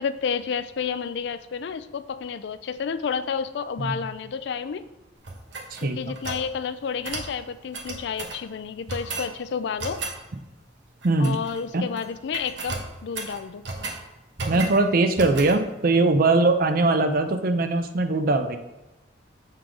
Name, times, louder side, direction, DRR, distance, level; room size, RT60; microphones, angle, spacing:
voice 1, 0.0-4.8 5.8-10.0 11.2-13.6, left 6 dB, 65° left, 12 dB, 0.4 m, -30 dB
sound 1, 5.2-6.5 7.0-7.3 7.7-8.4 8.9-9.3 9.8-10.2 11.0-11.6 11.9-12.1 12.3-14.0 14.4-14.8 15.2-15.6, right 3 dB, 70° right, 1.0 m, -34 dB
voice 2, 11.0-11.4 11.7-11.9 14.5-18.6, right 2 dB, 50° right, 7 dB, 0.6 m, -21 dB
6.7 x 3.8 x 4.6 m, 1.0 s
head